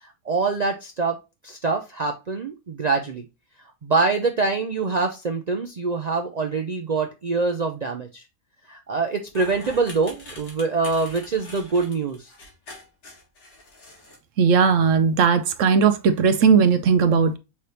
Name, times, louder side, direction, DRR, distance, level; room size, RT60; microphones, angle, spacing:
voice 1, 0.0-1.2 1.4-3.2 3.8-8.2 8.7-12.3, right 4 dB, 85° right, 0.3 m, -25 dB
sound 1, 9.3-14.2, left 2 dB, 80° left, 2.2 m, -43 dB
voice 2, 14.4-17.4, right 6 dB, 70° right, 0.9 m, -18 dB
5.8 x 3.3 x 2.7 m
omnidirectional pair, 1.5 m